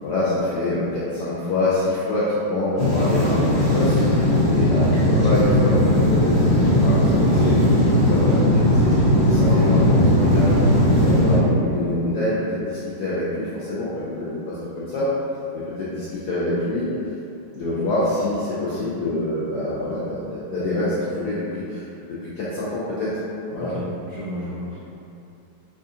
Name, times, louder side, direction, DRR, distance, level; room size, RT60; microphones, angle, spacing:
voice 1, 0.0-4.0 4.5-10.5 11.0-15.1 15.5-16.9 17.5-23.1 23.5-23.7, left 1 dB, 75° left, -10 dB, 0.9 m, -26 dB
voice 2, 2.7-3.1 23.6-24.8, equal, 55° right, -12 dB, 1.1 m, -32 dB
sound 1, 2.8-11.4, left 1 dB, 35° left, 1.2 m, -17 dB
4.1 x 2.4 x 2.7 m, 2.7 s
omnidirectional pair, 2.3 m